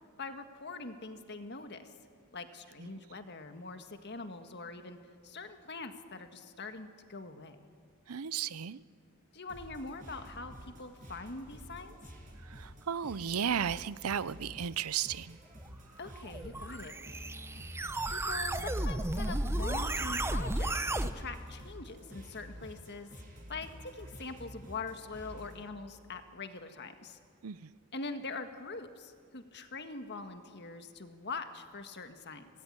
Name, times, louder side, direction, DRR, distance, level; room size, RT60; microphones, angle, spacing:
voice 1, 0.2-1.9 2.3-5.0 5.2-7.6 9.3-12.0 16.0-16.9 18.1-20.7 21.0-23.1 23.5-27.2 27.9-32.5, left 3 dB, 50° left, 7 dB, 1.7 m, -43 dB
voice 2, 8.1-8.8 12.4-15.4 27.4-27.7, right 8 dB, 85° right, 18 dB, 0.6 m, -34 dB
sound 1, 9.5-25.6, equal, 35° right, 6.3 m, -49 dB
sound 2, 16.1-21.1, right 1 dB, 10° right, 0.7 m, -33 dB
25.0 x 19.0 x 9.9 m, 2.1 s
head